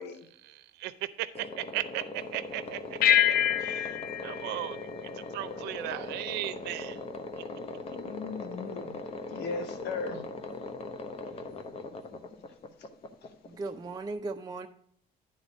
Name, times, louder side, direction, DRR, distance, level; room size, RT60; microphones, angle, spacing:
voice 1, 0.4-7.0 7.4-7.5, right 15 dB, 90° right, 0.5 m, -37 dB
sound 1, 1.4-14.0, left 3 dB, 35° left, 0.8 m, -40 dB
sound 2, 3.0-5.8, left 10 dB, 65° left, 0.4 m, -27 dB
voice 2, 7.5-9.0 9.3-10.3, left 4 dB, 80° left, 1.0 m, -38 dB
voice 3, 13.5-14.7, right 3 dB, 25° right, 0.5 m, -37 dB
9.9 x 4.0 x 5.2 m
cardioid pair, 110°, 17 cm